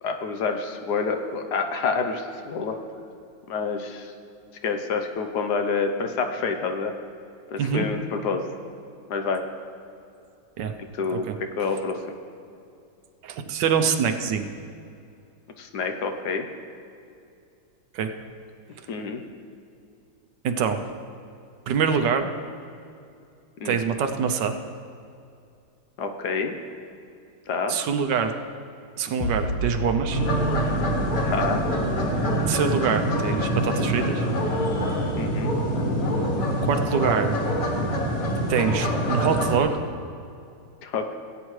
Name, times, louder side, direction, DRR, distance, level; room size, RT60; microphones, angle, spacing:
voice 1, 0.0-2.8 3.5-4.1 4.6-6.9 7.5-8.4 9.1-9.4 10.9-12.0 15.6-16.5 18.9-19.2 23.6-23.8 26.0-26.5 27.5-27.8 31.2-31.6 35.2-35.5 40.8-41.1, left 4 dB, 65° left, 5 dB, 1.2 m, -28 dB
voice 2, 13.2-14.5 17.9-18.1 20.4-20.8 21.7-22.3 23.6-24.6 27.7-28.3 29.0-30.2 32.5-34.3 36.6-37.4 38.5-39.8, right 6 dB, 75° right, 7 dB, 1.2 m, -24 dB
sound 1, 29.2-32.6, right 1 dB, 85° left, 1.5 m, -31 dB
sound 2, 30.1-39.6, equal, 50° left, 1.9 m, -25 dB
17.5 x 9.1 x 3.2 m, 2.5 s
omnidirectional pair, 2.0 m